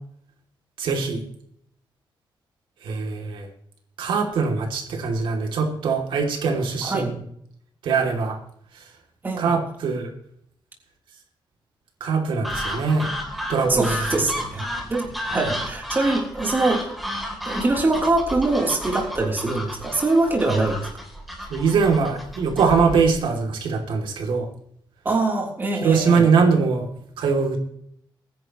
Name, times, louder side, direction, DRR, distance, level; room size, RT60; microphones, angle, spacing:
voice 1, 0.8-1.2 2.8-3.5 4.0-7.2 7.8-8.4 8.7-8.9 9.4-10.1 12.0-13.1 13.5-14.0 21.5-24.5 25.8-26.9 27.2-27.6, right 5 dB, 85° right, 2 dB, 2.7 m, -22 dB
sound 1, 12.4-23.2, equal, ahead, 3.2 m, -32 dB
voice 2, 13.7-14.6 14.9-15.1 15.3-16.8 17.4-20.9 25.0-26.3, right 2 dB, 25° right, -1 dB, 3.4 m, -23 dB
23.5 x 10.5 x 3.1 m, 0.69 s
wide cardioid pair, 135°, 8 cm